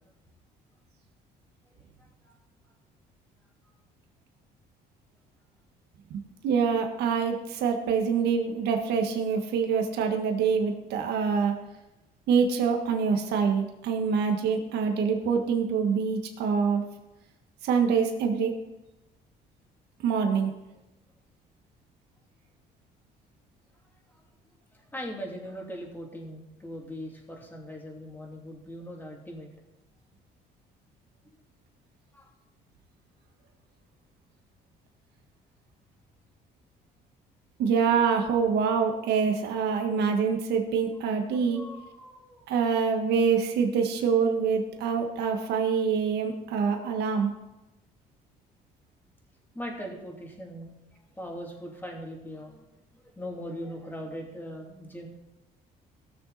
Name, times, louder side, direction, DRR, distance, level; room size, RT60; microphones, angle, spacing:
voice 1, 1.7-2.3 24.1-24.2 24.7-29.5 32.1-32.3 41.3-42.5 49.5-52.6 52.9-55.1, equal, 10° left, 0 dB, 2.9 m, -40 dB
voice 2, 6.1-11.6 12.3-16.8 17.6-18.5 20.0-20.5 37.6-41.6 42.5-47.3, right 6 dB, 75° right, 4 dB, 1.6 m, -25 dB
17.5 x 6.8 x 4.2 m, 0.96 s
cardioid pair, 110°, 17 cm